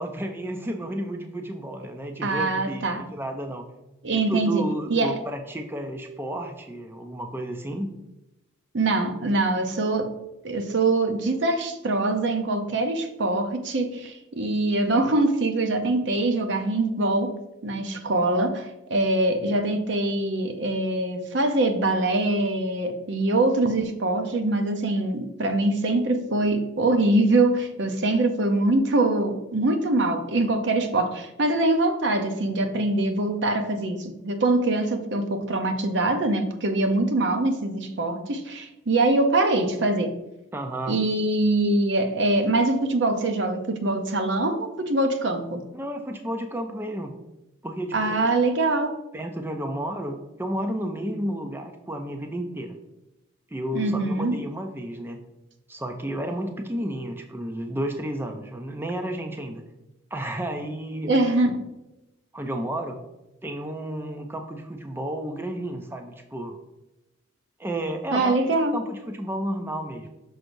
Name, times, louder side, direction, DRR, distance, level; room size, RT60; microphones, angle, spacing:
voice 1, 0.0-3.7 4.1-7.9 40.5-41.0 45.7-47.2 47.6-48.3 49.1-52.8 53.5-55.2 55.7-59.6 60.1-61.1 62.3-63.0 63.4-66.5 67.6-70.1, right 1 dB, 10° right, 4 dB, 0.4 m, -32 dB
voice 2, 2.2-3.0 4.0-4.6 4.9-5.1 8.7-10.1 10.4-17.3 17.6-40.1 40.9-45.6 47.9-48.9 53.7-54.4 61.1-61.5 68.1-68.8, right 2 dB, 60° right, 7 dB, 0.6 m, -23 dB
6.3 x 6.1 x 2.6 m, 0.96 s
head